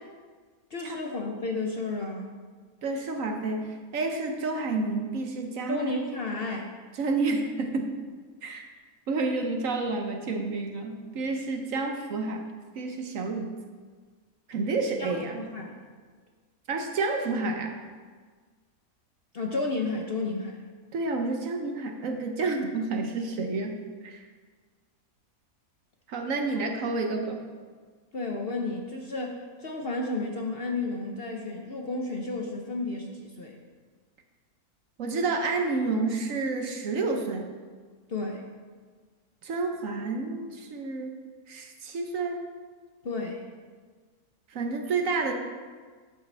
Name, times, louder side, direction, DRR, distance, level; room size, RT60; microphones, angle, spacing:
voice 1, 0.7-2.3 5.7-6.7 15.0-15.8 19.3-20.6 26.5-26.7 28.1-33.6 38.1-38.4 43.0-43.4, left 3 dB, 50° left, 1 dB, 0.8 m, -32 dB
voice 2, 2.8-5.9 6.9-8.0 8.4-8.7 9.1-12.5 12.7-13.5 14.5-15.4 16.7-17.8 20.9-23.8 24.0-24.3 26.1-27.4 35.0-37.5 39.4-41.1 41.5-42.4 44.5-45.3, right 3 dB, 60° right, 4 dB, 1.2 m, -29 dB
11.0 x 8.3 x 3.3 m, 1.5 s
omnidirectional pair, 1.7 m